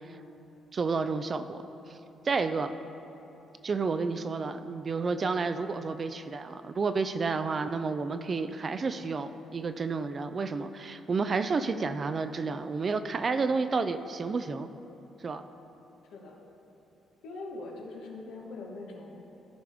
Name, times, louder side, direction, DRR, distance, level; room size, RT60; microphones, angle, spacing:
voice 1, 0.7-1.6 1.9-2.0 2.2-2.7 3.6-14.7 15.2-15.5, right 4 dB, 40° right, 10 dB, 0.4 m, -30 dB
voice 2, 17.2-19.2, left 2 dB, 85° left, 0 dB, 1.2 m, -42 dB
13.5 x 5.1 x 3.5 m, 3.0 s
cardioid pair, 90°, 0 cm